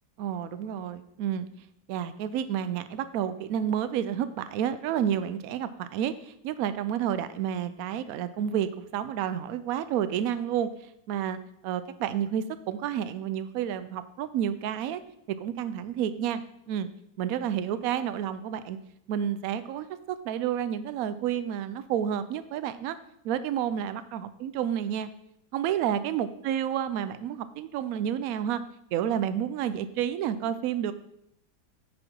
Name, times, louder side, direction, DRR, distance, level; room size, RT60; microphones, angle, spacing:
voice 1, 0.2-1.5 1.9-10.7 11.1-15.0 15.3-16.4 16.7-16.9 17.2-18.8 19.1-23.0 23.2-25.1 25.5-28.6 28.9-30.9, right 9 dB, 70° right, 13 dB, 0.9 m, -30 dB
9.5 x 4.3 x 4.5 m, 0.76 s
omnidirectional pair, 1.8 m